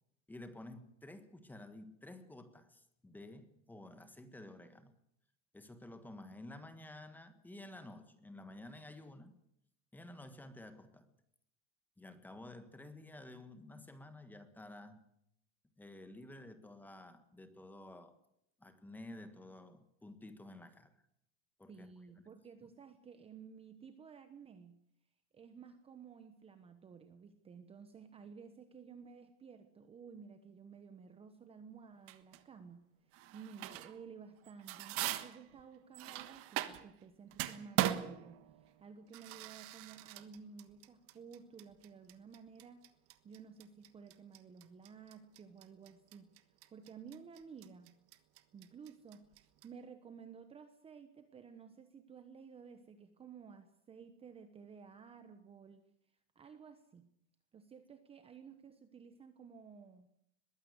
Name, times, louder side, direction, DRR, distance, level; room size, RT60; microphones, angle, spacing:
voice 1, 0.3-4.9 5.5-9.3 9.9-11.1 12.0-15.0 15.8-18.2 18.6-20.9 21.6-21.9, left 1 dB, 5° left, 9 dB, 1.5 m, -52 dB
voice 2, 21.7-24.7 25.3-32.9 33.3-42.9 43.2-46.3 46.7-47.9 48.5-49.3 49.6-55.8 56.3-57.1 57.5-60.1, right 6 dB, 15° right, 9 dB, 1.1 m, -54 dB
sound 1, 32.1-32.4 33.1-34.0 34.4-37.0 37.3-49.7, right 13 dB, 40° right, 1.4 m, -41 dB
21.5 x 16.0 x 8.1 m, 0.76 s
supercardioid pair, 160°, 35 cm